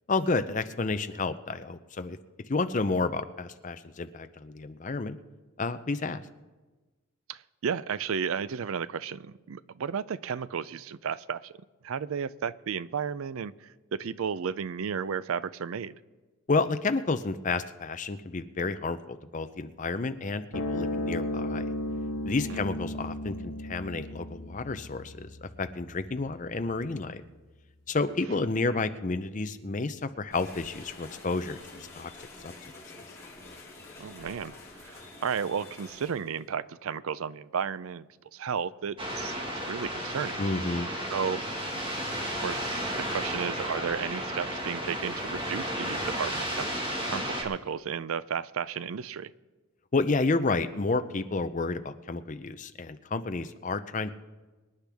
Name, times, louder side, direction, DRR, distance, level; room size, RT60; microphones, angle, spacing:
voice 1, 0.1-2.2 2.5-5.2 5.6-6.2 16.5-20.4 20.7-21.7 22.2-27.2 27.9-32.1 32.4-32.5 40.4-40.9 49.9-54.1, left 3 dB, 35° left, 10 dB, 0.5 m, -30 dB
voice 2, 7.3-11.5 11.8-15.9 22.5-22.6 34.0-38.1 38.3-40.4 41.1-41.4 41.7-41.8 42.3-46.7 47.1-49.3, right 7 dB, 75° right, 17 dB, 0.4 m, -33 dB
sound 1, 20.5-27.2, left 1 dB, 75° left, 1.7 m, -35 dB
sound 2, 30.3-36.4, left 3 dB, 15° left, 3.0 m, -48 dB
sound 3, 39.0-47.4, equal, 25° right, 1.7 m, -33 dB
25.0 x 10.0 x 3.5 m, 1.2 s
head